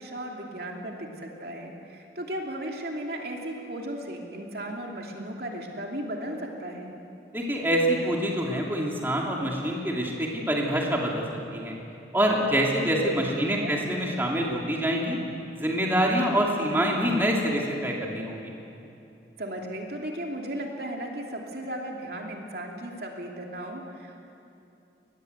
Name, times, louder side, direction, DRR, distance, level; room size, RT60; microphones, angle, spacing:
voice 1, 0.0-6.9 13.3-13.8 19.4-24.2, right 1 dB, 60° right, 0 dB, 2.8 m, -36 dB
voice 2, 7.3-11.2 11.5-11.7 12.1-15.2 15.6-18.5, equal, 10° right, -2 dB, 2.7 m, -26 dB
23.5 x 19.5 x 8.1 m, 2.8 s
head